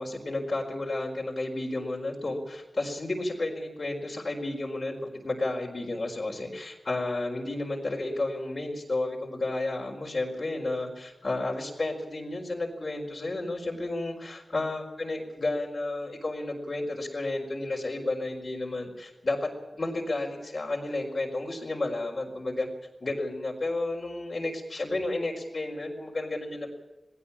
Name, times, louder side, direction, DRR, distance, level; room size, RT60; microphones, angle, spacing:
voice 1, 0.0-22.7 23.0-26.7, left 2 dB, 55° left, -1 dB, 4.6 m, -32 dB
19.5 x 17.5 x 8.7 m, 1.1 s
wide cardioid pair, 70°, 0 cm